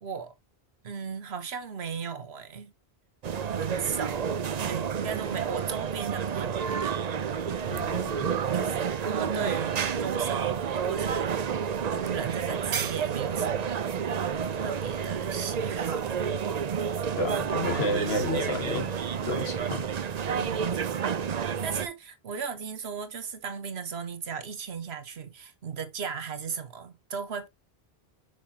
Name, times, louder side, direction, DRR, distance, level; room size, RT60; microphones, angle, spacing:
voice 1, 0.0-0.3 0.8-2.7 3.3-7.0 8.5-11.5 11.9-13.9 14.5-16.3 19.6-19.9 20.3-27.5, right 6 dB, 80° right, 1.3 m, -37 dB
sound 1, 3.2-21.9, right 7 dB, 50° right, 0.6 m, -30 dB
voice 2, 7.6-8.3 17.2-18.9 19.3-19.9, left 2 dB, 80° left, 2.0 m, -31 dB
6.4 x 6.1 x 2.8 m
omnidirectional pair, 1.0 m